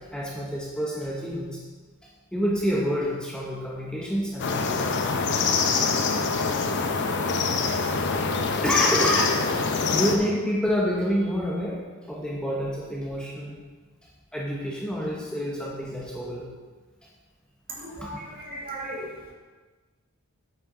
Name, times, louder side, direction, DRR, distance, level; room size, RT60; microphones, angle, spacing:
voice 1, 0.0-1.6 2.3-5.4 7.0-7.1 8.0-9.4 9.9-11.8 12.1-13.6 14.3-16.5 18.0-18.1, equal, 5° left, -5 dB, 0.8 m, -28 dB
sound 1, 4.4-10.2, left 4 dB, 55° left, 0.6 m, -25 dB
voice 2, 17.8-18.2 18.5-19.3, right 1 dB, 45° right, -4 dB, 1.8 m, -36 dB
8.4 x 5.6 x 3.8 m, 1.3 s
head